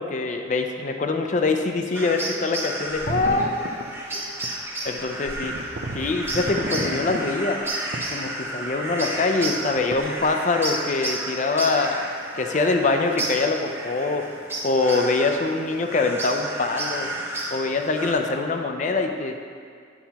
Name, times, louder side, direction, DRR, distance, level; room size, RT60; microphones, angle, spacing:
voice 1, 0.0-3.7 4.1-4.4 4.9-5.5 5.9-7.6 8.1-14.3 14.6-17.1 17.5-19.4, left 3 dB, 40° left, 5 dB, 0.5 m, -24 dB
sound 1, 1.9-18.1, right 1 dB, 10° right, 0.7 m, -32 dB
sound 2, 2.9-3.8 4.4-4.5 5.0-5.1 5.3-7.2 7.9-8.6 9.2-9.3 9.8-10.2, right 2 dB, 50° right, 0.5 m, -31 dB
9.3 x 6.9 x 2.9 m, 2.1 s
head